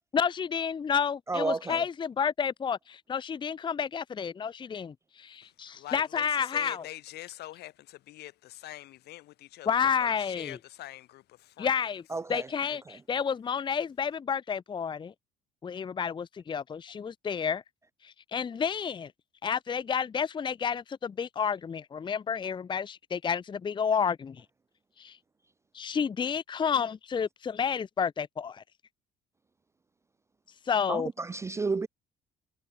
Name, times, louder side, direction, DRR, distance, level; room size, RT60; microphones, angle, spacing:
voice 1, 0.1-6.8 9.7-10.6 11.6-12.0 12.3-15.1 15.6-17.6 18.0-19.1 19.4-24.4 25.0-25.2 25.7-28.6 30.7-31.1, left 7 dB, 30° left, 0.7 m, -30 dB
voice 2, 1.3-1.8 12.1-12.5 12.9-13.0 30.9-31.9, right 3 dB, 15° right, 0.3 m, -31 dB
voice 3, 5.4-11.8, left 15 dB, 75° left, 3.0 m, -45 dB
cardioid pair, 110°, 17 cm